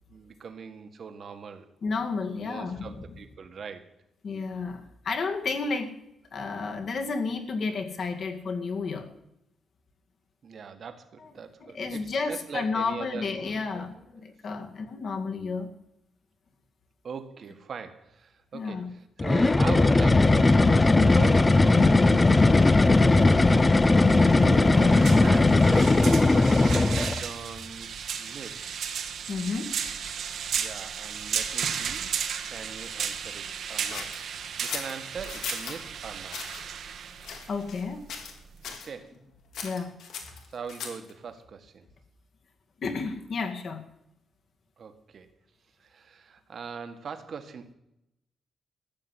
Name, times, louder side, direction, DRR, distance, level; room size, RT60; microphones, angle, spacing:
voice 1, 0.1-1.7 2.4-3.9 10.4-13.3 13.7-13.9 14.7-14.8 17.0-22.5 24.1-28.5 30.6-32.2 32.4-34.2 34.6-36.4 38.7-39.1 40.5-41.8 44.8-45.3 45.8-47.7, right 6 dB, 50° right, 8 dB, 1.7 m, -41 dB
voice 2, 1.8-3.0 4.2-5.9 6.3-9.1 11.2-11.3 11.6-15.7 18.5-18.9 22.9-23.3 23.7-24.0 29.3-29.7 37.5-38.1 39.6-40.0 42.8-43.8, left 4 dB, 55° left, 5 dB, 2.0 m, -32 dB
sound 1, 19.2-27.2, left 2 dB, 20° left, 0.7 m, -19 dB
sound 2, 24.1-38.8, right 7 dB, 70° right, 1.5 m, -35 dB
sound 3, 33.9-35.8 36.3-36.6 37.2-37.8 38.1-38.4 38.6-38.9 39.5-41.1, left 6 dB, 85° left, 3.0 m, -38 dB
14.0 x 7.8 x 9.7 m, 0.84 s
cardioid pair, 120°, 0 cm